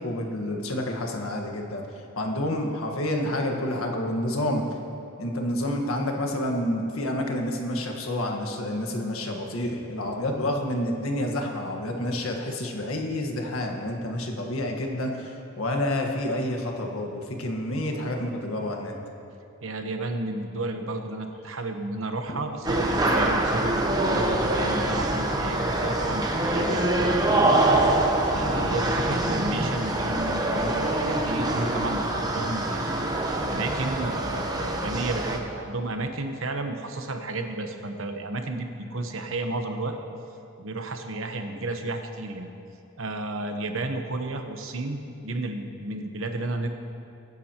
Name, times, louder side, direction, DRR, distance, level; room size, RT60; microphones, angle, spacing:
voice 1, 0.0-4.6 5.2-19.0, left 1 dB, 85° left, 2 dB, 1.5 m, -29 dB
voice 2, 19.6-28.0 28.3-32.9 33.2-40.0 40.6-42.5 43.0-46.7, right 2 dB, 70° right, 5 dB, 1.0 m, -32 dB
sound 1, 22.6-35.4, right 1 dB, 20° right, 0.9 m, -25 dB
22.0 x 10.0 x 3.0 m, 2.7 s
head